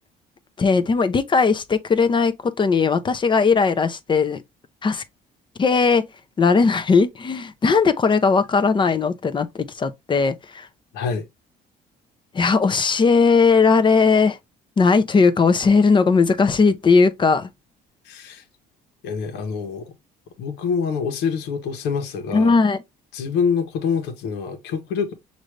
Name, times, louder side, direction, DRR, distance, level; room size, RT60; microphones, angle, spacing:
voice 1, 0.6-4.4 4.8-5.0 5.6-6.0 6.4-10.7 12.3-14.4 14.8-17.5 22.3-22.8, left 4 dB, 30° left, 0.7 m, -18 dB
voice 2, 10.9-11.2 18.0-18.4 19.0-20.0 20.4-22.5 23.1-25.1, left 6 dB, 90° left, 1.1 m, -26 dB
6.2 x 2.7 x 3.2 m
cardioid pair, 110°, 17 cm